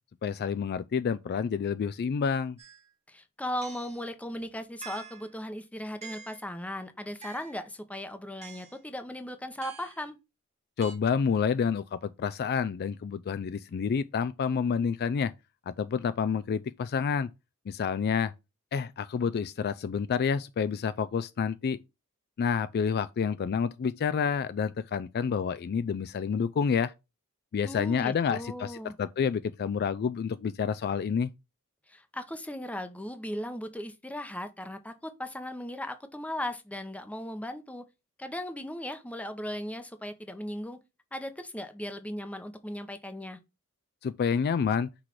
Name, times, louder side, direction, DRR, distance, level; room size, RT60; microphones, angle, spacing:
voice 1, 0.2-2.6 10.8-15.3 15.7-17.3 17.7-18.3 18.7-21.8 22.4-26.9 27.5-31.3 44.0-44.9, left 6 dB, 45° left, 0.3 m, -29 dB
sound 1, 2.6-2.8 3.6-4.0 4.8-5.3 6.0-6.5 7.2-7.7 8.4-8.8 9.6-10.0 10.8-11.0, right 5 dB, 30° right, 1.2 m, -46 dB
voice 2, 3.1-10.2 27.6-29.0 31.9-37.9 38.2-40.8 41.1-43.4, left 1 dB, 5° left, 0.8 m, -37 dB
6.0 x 3.2 x 5.8 m
head